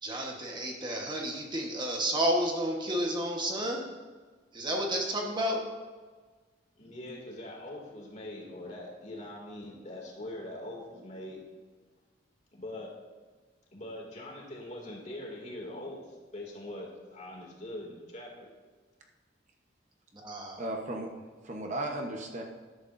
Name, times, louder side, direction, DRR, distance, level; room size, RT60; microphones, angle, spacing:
voice 1, 0.0-3.9 4.5-5.6 20.1-20.6, equal, 25° right, 0 dB, 1.3 m, -31 dB
voice 2, 6.8-11.4 12.5-12.9 13.7-18.5, left 1 dB, 40° left, -1 dB, 2.6 m, -42 dB
voice 3, 20.6-21.1 21.4-22.4, right 1 dB, 40° right, 2 dB, 1.1 m, -35 dB
13.5 x 11.5 x 2.7 m, 1.4 s
head